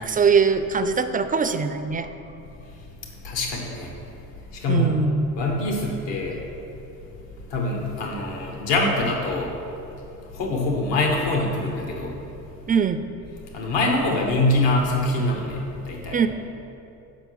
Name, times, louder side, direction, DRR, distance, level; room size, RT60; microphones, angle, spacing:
voice 1, 0.0-2.1 4.7-5.3 12.7-13.0 16.1-16.3, right 5 dB, 20° right, 9 dB, 0.3 m, -21 dB
voice 2, 3.2-3.9 4.5-4.9 5.4-6.4 7.5-9.5 10.3-12.2 13.5-16.2, left 2 dB, 70° left, 1 dB, 1.4 m, -24 dB
7.0 x 5.3 x 6.2 m, 2.8 s
supercardioid pair, 65°, 45 cm